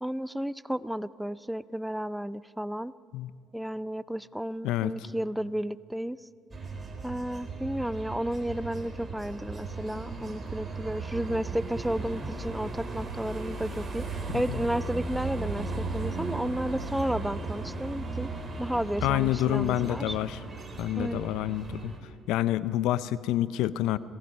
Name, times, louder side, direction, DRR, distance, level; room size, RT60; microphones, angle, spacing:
voice 1, 0.0-2.9 3.5-6.2 7.0-18.3 18.6-20.2 21.0-21.4, equal, 5° right, 17 dB, 0.5 m, -32 dB
sound 1, 6.5-22.0, right 3 dB, 25° right, 3.8 m, -36 dB
voice 2, 19.0-20.4 20.8-21.9 22.3-24.0, left 14 dB, 80° left, 16 dB, 0.6 m, -28 dB
27.0 x 18.5 x 5.5 m, 2.2 s
supercardioid pair, 85°, 0 cm